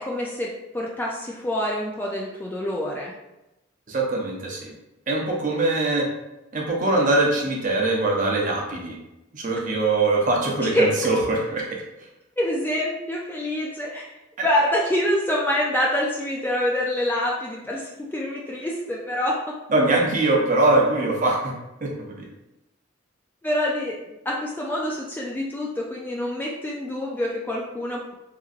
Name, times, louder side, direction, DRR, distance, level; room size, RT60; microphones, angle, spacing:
voice 1, 0.0-3.1 10.6-10.9 12.4-14.0 14.4-19.4 23.4-24.0 24.3-28.0, left 1 dB, 10° left, -3 dB, 0.3 m, -26 dB
voice 2, 3.9-4.7 5.1-6.1 6.5-9.0 9.3-11.8 14.4-14.5 19.7-21.5 21.8-22.3, right 2 dB, 40° right, -1 dB, 0.6 m, -22 dB
2.9 x 2.5 x 2.5 m, 0.96 s
head